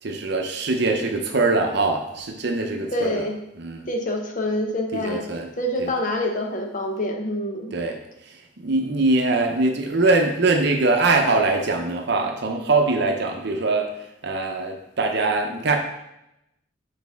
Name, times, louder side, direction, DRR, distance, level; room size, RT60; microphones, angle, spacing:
voice 1, 0.0-3.3 3.6-3.9 4.9-5.5 5.8-5.9 7.7-8.0 8.6-13.9 14.2-15.8, right 3 dB, 55° right, 4 dB, 0.7 m, -22 dB
voice 2, 2.9-3.4 3.9-5.2 5.6-7.8, left 1 dB, 40° left, 3 dB, 0.8 m, -26 dB
6.4 x 4.1 x 3.5 m, 0.87 s
head